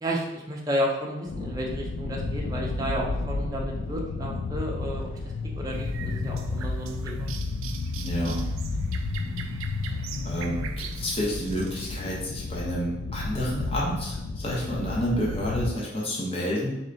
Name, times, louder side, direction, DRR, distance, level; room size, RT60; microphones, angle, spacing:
voice 1, 0.0-5.1 5.6-7.3, equal, 20° right, -2 dB, 0.5 m, -32 dB
sound 1, 1.3-15.7, left 3 dB, 65° left, 0.3 m, -32 dB
sound 2, 5.7-11.9, right 8 dB, 80° right, 0.3 m, -43 dB
voice 2, 8.0-8.4 10.2-16.8, equal, 30° left, -5 dB, 0.8 m, -29 dB
3.2 x 2.9 x 3.9 m, 0.93 s
head